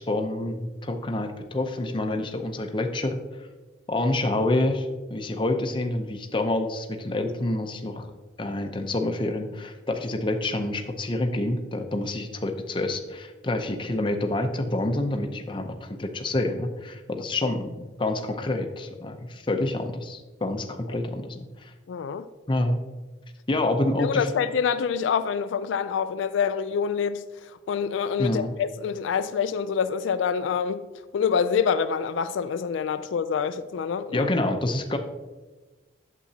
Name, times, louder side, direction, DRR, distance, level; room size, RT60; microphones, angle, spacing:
voice 1, 0.0-3.5 3.9-8.1 8.4-17.7 18.0-21.7 22.5-22.8 23.5-24.3 28.2-28.5 34.1-35.0, left 2 dB, 25° left, 0.6 m, -27 dB
voice 2, 21.9-22.3 24.0-30.8 31.1-34.3, left 6 dB, 85° left, 0.3 m, -26 dB
8.5 x 7.0 x 2.8 m
head